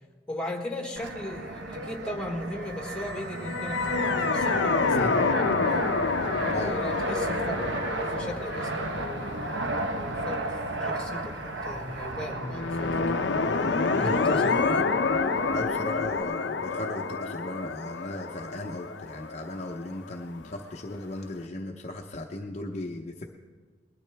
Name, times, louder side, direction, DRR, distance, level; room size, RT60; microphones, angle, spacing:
voice 1, 0.3-5.3 6.7-9.7 10.0-13.2 13.9-14.5, left 1 dB, 5° left, 2 dB, 1.4 m, -38 dB
Fixed-wing aircraft airplane, 1.0-16.2, right 2 dB, 80° right, 1.0 m, -34 dB
sound 1, 3.3-10.6 12.5-20.2, left 4 dB, 75° left, 0.6 m, -28 dB
voice 2, 6.5-6.9 14.0-14.2 15.5-23.3, left 1 dB, 40° left, 2 dB, 0.7 m, -36 dB
20.0 x 12.5 x 3.4 m, 1.4 s
head